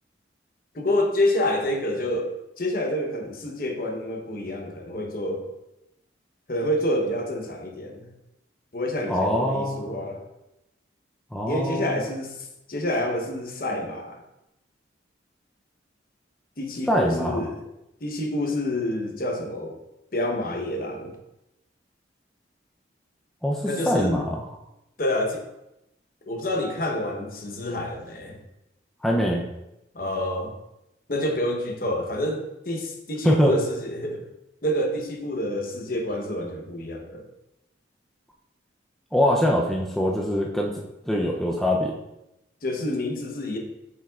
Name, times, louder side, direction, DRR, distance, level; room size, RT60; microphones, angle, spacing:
voice 1, 0.7-2.3 2.6-5.4 6.5-8.1 8.7-10.2 11.5-12.4 12.7-14.2 16.6-17.6 18.0-19.7 20.1-21.2 23.7-24.2 25.0-25.4 26.3-28.4 29.9-30.5 31.1-34.2 34.6-37.2 42.6-43.6, left 1 dB, 50° left, 2 dB, 0.9 m, -28 dB
voice 2, 9.1-9.9 11.3-12.1 16.9-17.4 23.4-24.4 29.0-29.4 33.2-33.5 39.1-41.9, equal, ahead, -2 dB, 0.4 m, -23 dB
7.3 x 5.8 x 2.4 m, 0.89 s
head